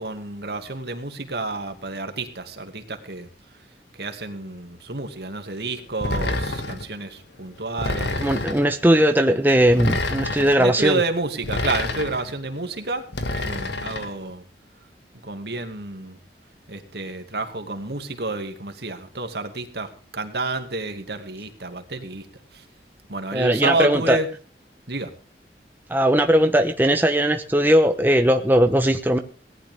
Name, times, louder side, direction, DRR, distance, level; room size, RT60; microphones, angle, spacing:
voice 1, 0.0-3.3 4.0-8.4 10.6-13.0 13.3-14.4 15.2-16.2 16.7-22.3 22.5-22.6 23.1-24.3 24.9-25.1, right 3 dB, 65° right, 7 dB, 2.3 m, -29 dB
sound 1, 6.0-6.9 7.8-8.7 9.7-10.6 11.4-12.3 13.1-14.1, left 2 dB, 80° left, 1.9 m, -27 dB
voice 2, 7.9-11.0 23.3-24.2 25.9-29.2, right 1 dB, 10° right, 6 dB, 1.0 m, -19 dB
18.5 x 11.5 x 3.7 m, 0.40 s
head